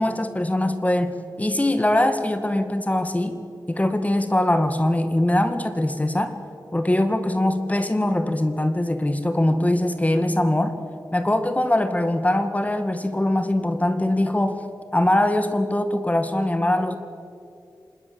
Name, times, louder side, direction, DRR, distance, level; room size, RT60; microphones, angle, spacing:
voice 1, 0.0-3.4 3.7-6.4 6.7-10.8 11.1-14.6 14.9-17.0, left 1 dB, 20° left, 9 dB, 1.8 m, -22 dB
26.0 x 20.0 x 7.7 m, 2.5 s
wide cardioid pair, 65°, 7 cm